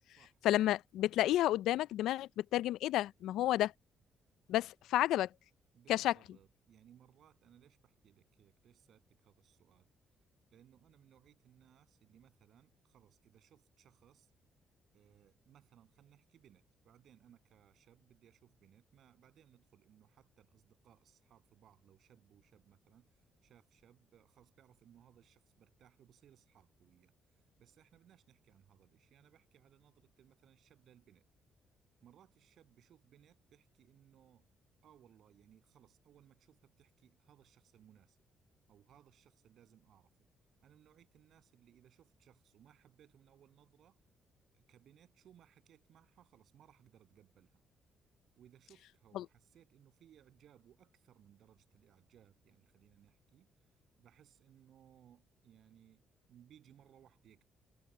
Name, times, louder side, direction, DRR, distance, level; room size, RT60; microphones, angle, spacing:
voice 1, 0.4-3.7 4.5-5.3 5.9-6.1 49.1-49.3, left 14 dB, 85° left, 0.4 m, -31 dB
voice 2, 5.7-9.9 10.5-14.3 14.9-31.2 32.0-34.5 34.8-38.2 38.7-40.1 40.6-44.0 44.5-47.6 48.4-53.7 54.0-56.0 56.3-57.4, right 10 dB, 70° right, 8.0 m, -65 dB
cardioid pair, 90°, 0 cm